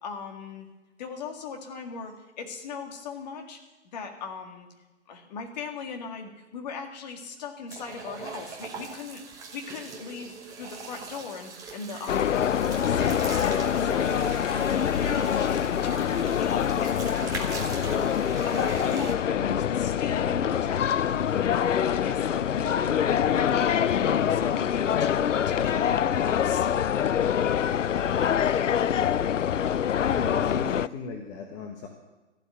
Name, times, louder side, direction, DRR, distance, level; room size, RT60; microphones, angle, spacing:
voice 1, 0.0-0.7 1.0-3.6 3.9-4.7 5.1-17.1 17.4-18.1 18.4-21.2 21.5-26.8, left 5 dB, 35° left, 4 dB, 2.0 m, -39 dB
sound 1, 7.7-19.1, right 5 dB, 10° right, 1.0 m, -40 dB
sound 2, 12.1-30.9, left 9 dB, 80° left, 0.6 m, -25 dB
voice 2, 30.0-31.9, left 4 dB, 15° left, 2 dB, 1.0 m, -38 dB
13.5 x 8.2 x 9.3 m, 1.1 s
figure-of-eight pair, 140°, 37 cm